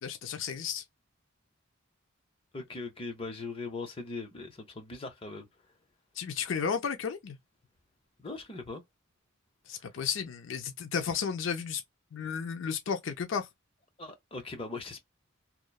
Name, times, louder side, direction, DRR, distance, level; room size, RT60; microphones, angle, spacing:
voice 1, 0.0-0.8 6.2-7.4 9.7-11.8 12.1-13.5, left 6 dB, 65° left, 0.5 m, -33 dB
voice 2, 2.5-5.5 8.2-8.8 14.0-15.0, left 3 dB, 25° left, 0.7 m, -40 dB
2.9 x 2.0 x 2.2 m
head